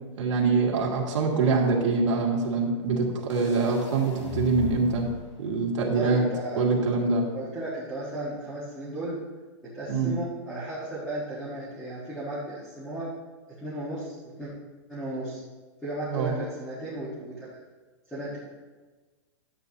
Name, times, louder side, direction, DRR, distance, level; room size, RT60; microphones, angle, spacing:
voice 1, 0.2-5.1 5.4-6.3 6.6-7.2 9.9-10.1 16.1-16.3, right 4 dB, 70° right, -2 dB, 2.3 m, -24 dB
sound 1, 3.3-5.3, left 5 dB, 80° left, 3.4 m, -38 dB
voice 2, 5.9-6.6 7.3-9.2 9.6-13.1 13.6-14.5 14.9-15.4 15.8-17.5 18.1-18.4, right 1 dB, 5° left, -9 dB, 1.4 m, -35 dB
12.5 x 9.1 x 2.8 m, 1.3 s
supercardioid pair, 175°, 16 cm